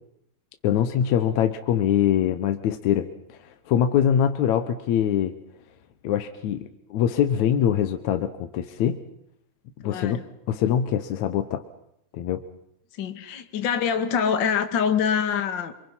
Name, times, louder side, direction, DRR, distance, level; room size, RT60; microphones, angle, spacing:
voice 1, 0.6-5.4 6.0-9.0 9.8-10.2 10.5-11.6 12.1-12.4, left 9 dB, 70° left, 8 dB, 2.3 m, -23 dB
voice 2, 9.8-10.2 13.0-15.7, left 7 dB, 40° left, 7 dB, 2.1 m, -25 dB
28.0 x 24.5 x 5.6 m, 0.79 s
omnidirectional pair, 3.6 m